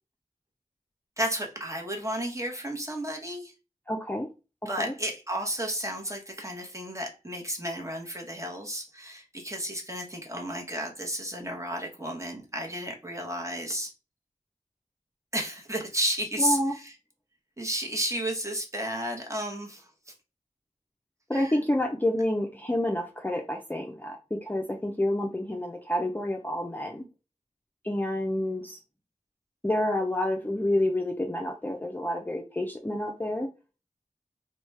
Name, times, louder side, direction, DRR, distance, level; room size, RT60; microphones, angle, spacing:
voice 1, 1.2-3.5 4.7-13.9 15.3-16.9 17.6-20.1 21.3-21.6, right 1 dB, 20° right, 1.0 m, -32 dB
voice 2, 3.9-4.3 4.8-4.9 16.4-16.8 21.3-27.0 27.8-28.8 29.6-33.5, left 1 dB, 15° left, 0.5 m, -28 dB
3.1 x 2.2 x 3.1 m
wide cardioid pair, 40°, 14 cm